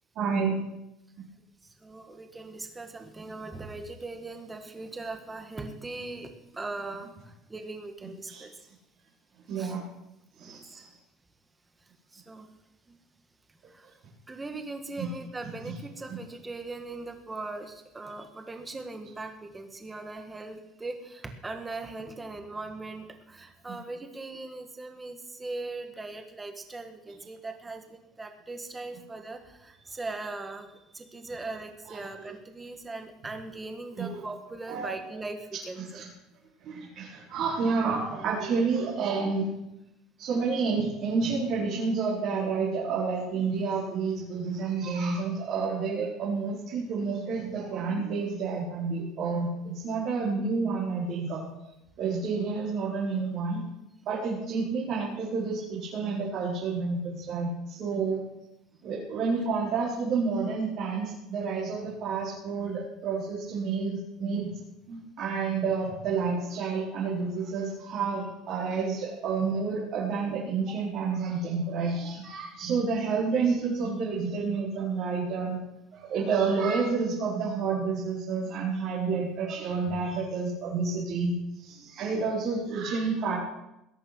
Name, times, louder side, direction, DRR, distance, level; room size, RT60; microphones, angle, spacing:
voice 1, 0.1-0.6 8.3-8.4 9.5-9.8 10.4-10.9 15.0-15.1 15.6-15.7 16.1-16.2 31.9-32.1 33.9-34.2 34.7-34.9 35.9-36.1 36.6-39.5 40.2-51.4 52.0-53.6 54.0-58.2 58.8-64.5 64.9-75.6 75.9-81.3 81.6-83.4, right 4 dB, 40° right, -7 dB, 5.0 m, -29 dB
voice 2, 1.8-8.6 9.6-9.8 10.4-10.8 12.1-12.5 12.9-13.0 13.7-14.0 14.3-36.0 70.2-70.4 70.7-70.8 79.1-79.2 79.9-80.1 81.7-81.9, right 3 dB, 10° right, 6 dB, 1.7 m, -40 dB
20.5 x 10.5 x 6.3 m, 0.89 s
cardioid pair, 170°, 0 cm